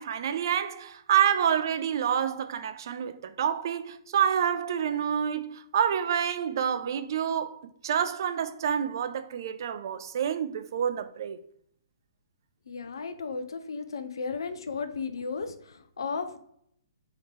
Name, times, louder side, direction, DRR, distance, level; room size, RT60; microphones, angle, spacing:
voice 1, 0.0-11.4, right 8 dB, 55° right, 0.3 m, -28 dB
voice 2, 12.7-16.4, left 5 dB, 75° left, 0.4 m, -34 dB
3.3 x 2.8 x 3.1 m
figure-of-eight pair, 125°, 2 cm